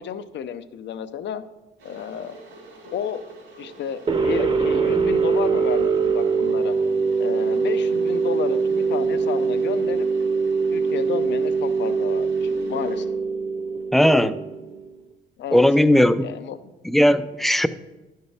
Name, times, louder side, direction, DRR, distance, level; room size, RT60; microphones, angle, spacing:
voice 1, 0.0-1.4 1.8-2.4 2.9-3.2 3.6-6.8 7.2-10.1 10.7-13.1 15.4-15.6 16.2-16.6, left 8 dB, 65° left, 12 dB, 0.6 m, -31 dB
Water / Boiling, 1.8-13.0, right 1 dB, 80° right, 3.2 m, -44 dB
sound 1, 4.1-14.9, right 5 dB, 25° right, 0.8 m, -23 dB
voice 2, 13.9-14.4 15.5-16.3 16.8-17.7, left 1 dB, ahead, 12 dB, 0.4 m, -17 dB
10.5 x 6.7 x 3.4 m, 1.1 s
cardioid pair, 90°, 20 cm